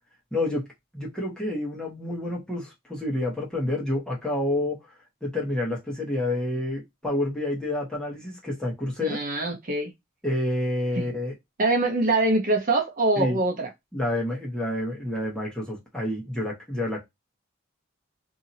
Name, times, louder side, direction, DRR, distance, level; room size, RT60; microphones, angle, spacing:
voice 1, 0.3-0.7 0.9-4.8 5.2-9.2 10.2-11.3 13.2-13.4 13.9-17.0, left 1 dB, 5° left, 1.2 m, -28 dB
voice 2, 9.0-9.9 11.0-11.1 11.6-13.7, right 2 dB, 40° right, 0.8 m, -24 dB
2.8 x 2.7 x 2.6 m
head